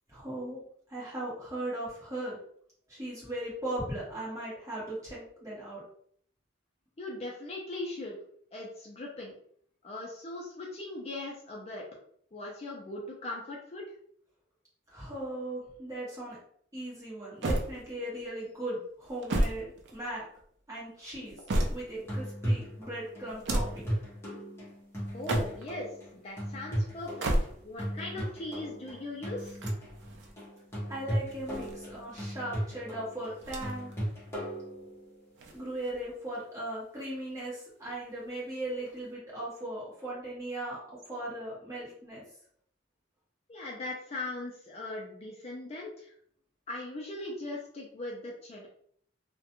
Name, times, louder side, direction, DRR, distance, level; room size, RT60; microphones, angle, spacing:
voice 1, 0.1-0.6 0.9-2.4 2.9-5.8 14.9-16.4 16.7-20.2 20.7-21.4 21.7-23.9 30.9-33.9 35.5-40.8 41.0-42.2, right 1 dB, 15° right, -7 dB, 1.0 m, -38 dB
voice 2, 7.0-8.2 8.5-9.3 9.8-11.8 12.3-13.9 25.1-27.3 27.6-29.6 43.5-46.1 46.7-48.7, left 2 dB, 35° left, -2 dB, 0.4 m, -39 dB
sound 1, 17.4-18.2 19.0-20.4 21.0-22.1 23.3-23.9 25.1-25.8 27.0-27.9 29.4-30.3 31.2-32.2 33.4-34.0 34.3-34.4 35.3-36.1, right 1 dB, 65° right, 0.4 m, -33 dB
sound 2, 21.9-35.3 38.9-39.0, equal, 15° left, 0.8 m, -37 dB
2.4 x 2.1 x 2.9 m, 0.63 s
head